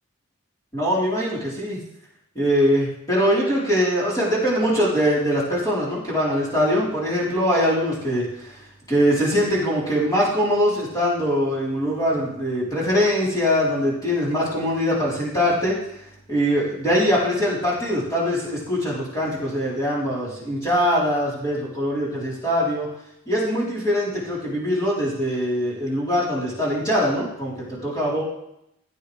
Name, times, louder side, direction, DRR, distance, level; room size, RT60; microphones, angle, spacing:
voice 1, 0.7-1.8 2.3-16.0 16.3-22.9 23.3-28.2, equal, 20° left, -8 dB, 4.1 m, -22 dB
16.0 x 8.8 x 3.4 m, 0.81 s
head